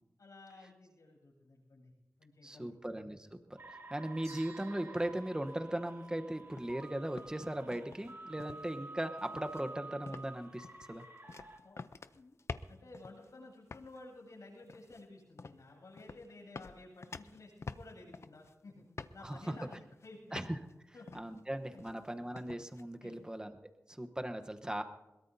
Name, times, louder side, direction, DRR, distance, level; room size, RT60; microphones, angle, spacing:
voice 1, 0.2-1.9 2.2-2.8 11.6-11.8 12.1-12.4 12.7-18.8 19.1-19.7 20.0-20.4 20.9-21.1 21.7-21.8 23.0-23.1, left 2 dB, 85° left, -3 dB, 7.9 m, -53 dB
voice 2, 2.4-11.0 19.2-19.6 20.3-20.6 21.1-24.8, right 1 dB, 15° right, 7 dB, 1.0 m, -38 dB
sound 1, 3.6-11.6, right 2 dB, 45° right, 2.1 m, -50 dB
sound 2, 4.2-6.7, right 3 dB, 65° right, 2.9 m, -59 dB
sound 3, 6.6-6.9 7.2-8.1 8.4-8.8 9.2-9.7 10.1-10.4 10.6-13.3 13.7-14.0 14.6-15.0 15.4-15.6 16.0-16.3 16.6-18.5 19.0-19.3 19.7-20.1 20.4-20.7 21.1-21.4 21.8-22.1 22.4-22.8, left 4 dB, 50° left, 0.5 m, -48 dB
22.0 x 22.0 x 2.7 m, 1.0 s
wide cardioid pair, 115°, 6 cm